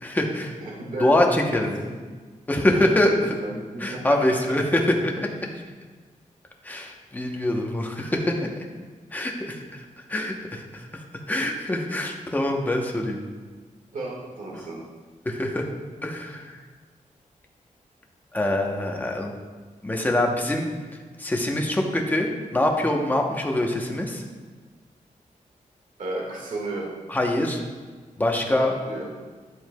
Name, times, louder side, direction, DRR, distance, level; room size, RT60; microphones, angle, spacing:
voice 1, 0.0-0.5 1.0-1.7 2.5-3.1 3.8-5.5 6.6-8.5 9.1-9.8 10.1-10.9 11.3-13.2 15.3-15.7 16.0-16.5 18.3-19.3 19.8-20.7 21.2-24.2 27.1-27.6 28.2-28.7, left 1 dB, 15° left, 1 dB, 0.9 m, -24 dB
voice 2, 0.6-1.1 1.5-2.0 2.7-4.2 13.9-14.8 26.0-26.9 28.6-29.1, right 2 dB, 75° right, -3 dB, 1.7 m, -33 dB
11.0 x 7.7 x 2.3 m, 1.5 s
wide cardioid pair, 160°, 14 cm